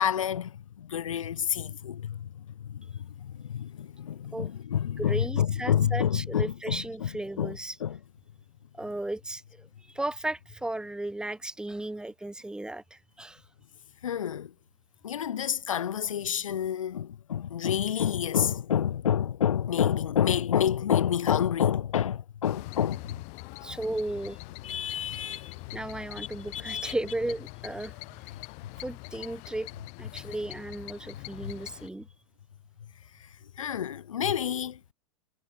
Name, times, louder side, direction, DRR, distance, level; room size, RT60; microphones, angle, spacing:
voice 1, 0.0-7.5 7.8-8.0 14.0-14.5 15.0-23.2 24.6-25.8 26.2-26.3 26.5-26.9 28.6-28.7 31.4-31.5 33.2-33.3 33.6-34.8, left 9 dB, 65° left, 1.3 m, -29 dB
voice 2, 5.0-7.8 8.8-13.4 23.6-24.4 25.7-27.9 28.8-29.7 30.0-32.1, right 1 dB, 5° right, 1.9 m, -35 dB
sound 1, 22.4-31.9, left 31 dB, 40° left, 5.1 m, -44 dB
figure-of-eight pair, 100°, 18 cm